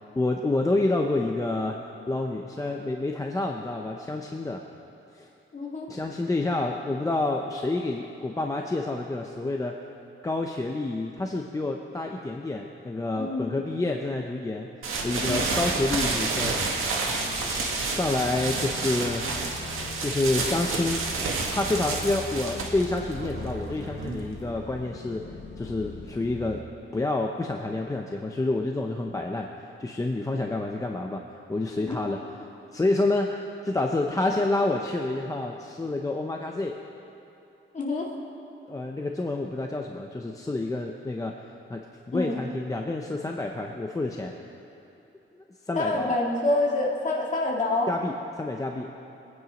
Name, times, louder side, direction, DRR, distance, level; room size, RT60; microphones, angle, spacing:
voice 1, 0.2-1.8 2.1-4.6 5.1-5.3 5.9-9.7 10.2-14.7 15.0-16.6 17.4-19.3 20.0-21.0 21.5-25.2 25.6-26.6 26.9-29.5 29.8-31.2 31.5-32.2 32.7-36.8 38.7-41.4 41.7-44.3 45.7-46.1 47.9-48.9, left 2 dB, 15° left, 1 dB, 0.6 m, -28 dB
voice 2, 5.5-5.9 13.1-13.6 15.2-15.5 31.8-32.0 37.7-38.1 42.1-42.4 45.8-47.9, left 2 dB, 35° left, -3 dB, 2.2 m, -27 dB
sound 1, 14.8-24.4, right 3 dB, 85° right, 1.9 m, -30 dB
sound 2, 15.0-26.6, left 3 dB, 60° left, 1.2 m, -41 dB
23.0 x 9.6 x 5.1 m, 2.9 s
wide cardioid pair, 170°, 21 cm